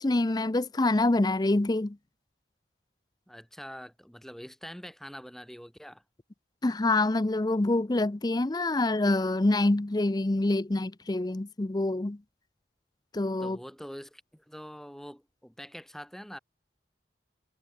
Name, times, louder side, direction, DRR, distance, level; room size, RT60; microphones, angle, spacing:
voice 1, 0.0-2.0 6.6-12.2 13.1-13.6, left 2 dB, 20° left, 0.5 m, -26 dB
voice 2, 3.3-6.0 13.4-16.4, equal, ahead, 5.4 m, -44 dB
head